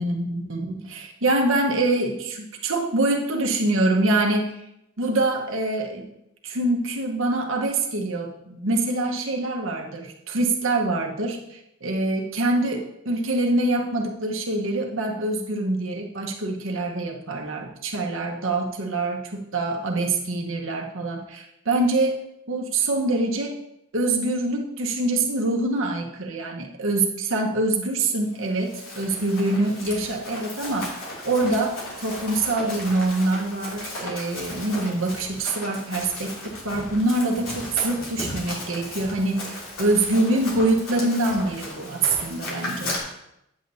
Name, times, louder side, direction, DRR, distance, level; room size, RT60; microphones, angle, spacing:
voice 1, 0.0-2.1 2.6-4.5 5.0-6.1 6.4-22.2 22.5-23.6 23.9-43.0, right 2 dB, 70° right, 1 dB, 1.3 m, -25 dB
Run, 28.4-43.0, left 1 dB, 85° left, 2.9 m, -35 dB
10.0 x 7.9 x 2.8 m, 0.80 s
head